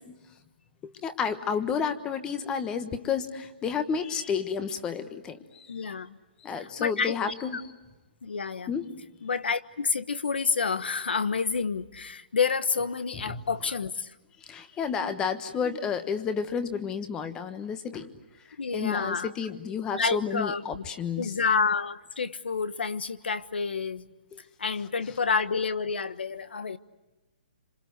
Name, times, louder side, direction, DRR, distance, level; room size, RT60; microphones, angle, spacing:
voice 1, 0.8-5.8 6.4-7.6 8.7-8.9 13.1-13.4 14.4-18.1 18.7-21.3, left 6 dB, 15° left, 10 dB, 1.2 m, -31 dB
voice 2, 5.7-6.2 6.5-7.2 7.5-7.6 8.2-8.7 9.2-14.1 18.6-19.3 19.9-20.8 21.2-24.1 24.6-26.8, left 5 dB, 85° left, 14 dB, 1.2 m, -29 dB
27.0 x 26.5 x 8.0 m, 1.1 s
hypercardioid pair, 160°, 5 cm